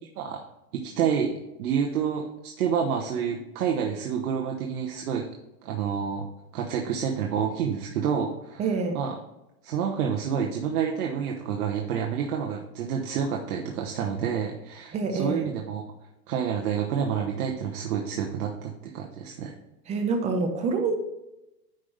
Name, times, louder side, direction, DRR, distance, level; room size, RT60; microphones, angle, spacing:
voice 1, 0.7-5.3 5.6-6.3 6.5-8.7 8.9-9.1 9.6-15.8 16.3-19.5, right 7 dB, 70° right, 1 dB, 1.1 m, -28 dB
voice 2, 8.6-9.0 14.9-15.5 19.9-20.9, right 4 dB, 15° right, 5 dB, 0.7 m, -26 dB
9.4 x 5.3 x 3.3 m, 0.93 s
hypercardioid pair, 145°, 47 cm